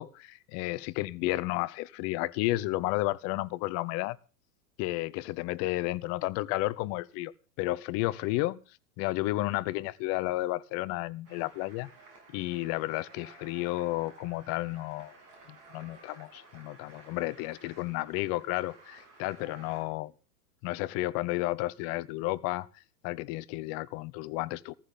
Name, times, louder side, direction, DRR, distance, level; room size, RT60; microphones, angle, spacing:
voice 1, 0.0-4.2 4.8-7.3 7.6-8.6 9.0-11.9 12.3-15.1 15.5-20.1 20.6-22.7 23.0-24.7, left 18 dB, 30° left, 0.7 m, -32 dB
sound 1, 11.2-19.8, right 3 dB, 45° right, 7.6 m, -54 dB
15.5 x 14.5 x 3.8 m
figure-of-eight pair, 100°, 48 cm